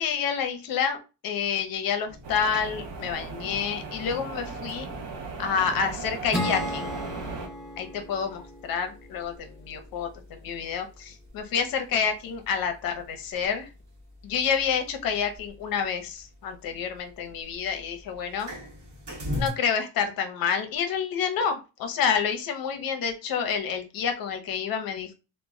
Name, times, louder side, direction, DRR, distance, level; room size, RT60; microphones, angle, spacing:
voice 1, 0.0-4.9 5.4-6.9 7.8-13.7 14.2-18.5 19.4-25.1, left 7 dB, 55° left, 6 dB, 0.6 m, -28 dB
sound 1, 2.1-19.5, left 1 dB, 45° right, 1.0 m, -44 dB
sound 2, 2.2-7.5, right 4 dB, 75° right, 0.7 m, -37 dB
Acoustic guitar / Strum, 6.3-9.8, left 1 dB, ahead, 0.3 m, -35 dB
2.1 x 2.0 x 3.6 m, 0.30 s
cardioid pair, 160°, 41 cm